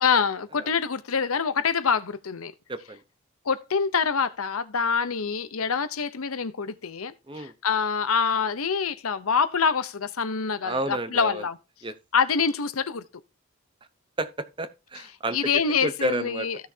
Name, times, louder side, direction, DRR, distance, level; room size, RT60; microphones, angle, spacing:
voice 1, 0.0-2.5 3.4-11.6 12.1-13.0 15.3-16.6, left 6 dB, 90° left, 0.8 m, -25 dB
voice 2, 2.7-3.0 7.3-7.5 10.6-11.4 11.8-11.9 14.2-14.3 14.6-15.4 15.8-16.5, right 2 dB, 25° right, 0.8 m, -30 dB
15.0 x 6.4 x 2.8 m
head